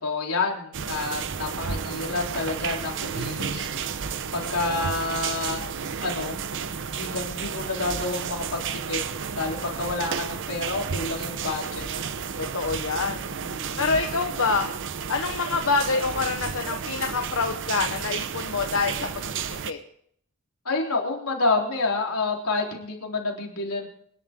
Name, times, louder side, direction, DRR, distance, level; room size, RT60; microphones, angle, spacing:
voice 1, 0.0-3.7 4.3-5.6 6.0-6.4 6.9-8.6 8.9-9.0 9.3-11.9 13.4-13.9 20.7-23.9, left 3 dB, 85° left, 0 dB, 3.7 m, -29 dB
sound 1, 0.7-19.7, right 6 dB, 60° right, 0.8 m, -32 dB
voice 2, 12.4-13.4 13.8-14.7 15.1-19.2 19.7-19.8, left 4 dB, 65° left, 4 dB, 1.1 m, -26 dB
25.5 x 11.0 x 3.7 m, 0.65 s
head